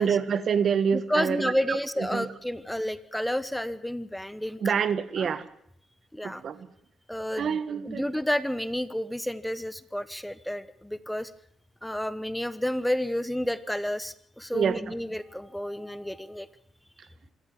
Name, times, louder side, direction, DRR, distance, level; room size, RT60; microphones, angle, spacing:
voice 1, 0.0-1.5 2.1-2.2 4.6-5.4 6.2-6.5 7.4-8.0 14.5-14.8, right 7 dB, 55° right, 14 dB, 1.6 m, -26 dB
voice 2, 0.9-4.9 5.2-5.3 6.1-6.4 7.1-11.3 11.8-16.5, equal, 5° left, 15 dB, 1.1 m, -31 dB
26.5 x 13.0 x 7.5 m, 0.71 s
cardioid pair, 90°, 0 cm